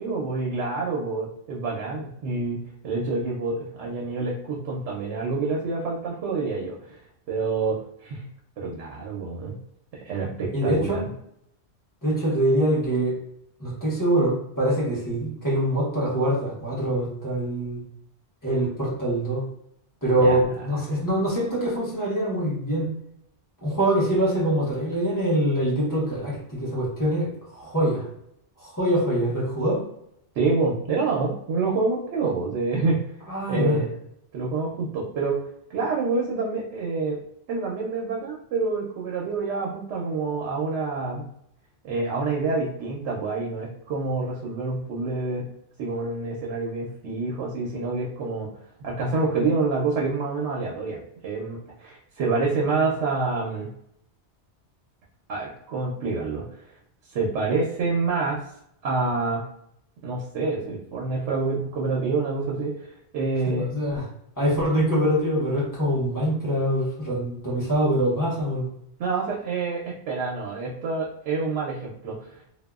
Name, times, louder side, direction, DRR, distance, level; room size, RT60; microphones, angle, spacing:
voice 1, 0.0-7.0 7.3-8.3 8.6-9.6 9.9-11.0 20.2-20.4 30.4-33.0 33.5-33.9 34.3-35.4 35.7-37.2 37.5-41.3 41.8-45.5 45.8-48.5 48.8-53.7 55.3-56.5 57.1-58.4 58.8-59.4 60.0-63.7 69.0-72.4, right 3 dB, 90° right, -2 dB, 0.9 m, -27 dB
voice 2, 10.5-11.0 12.0-13.2 13.6-17.8 18.4-19.4 20.0-22.9 23.6-28.1 28.6-29.8 33.3-33.8 63.6-64.0 64.4-68.7, right 1 dB, 20° left, -7 dB, 1.1 m, -24 dB
2.7 x 2.2 x 2.3 m, 0.75 s
omnidirectional pair, 1.1 m